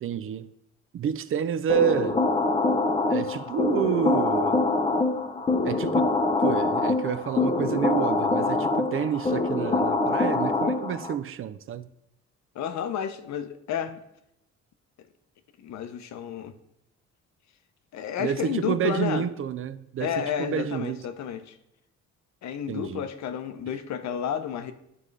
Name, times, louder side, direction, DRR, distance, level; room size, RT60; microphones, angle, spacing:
voice 1, 0.0-0.5 0.9-2.2 3.1-4.6 5.6-6.1 6.4-11.9 18.2-21.0 22.7-23.1, right 8 dB, 45° right, 0.4 m, -29 dB
sound 1, 1.7-11.1, left 3 dB, 20° left, 0.6 m, -24 dB
voice 2, 12.5-14.0 15.6-16.6 17.9-19.3 20.0-21.6 22.4-24.7, left 8 dB, 65° left, 0.7 m, -31 dB
9.5 x 3.7 x 3.2 m
cardioid pair, 90°, 30 cm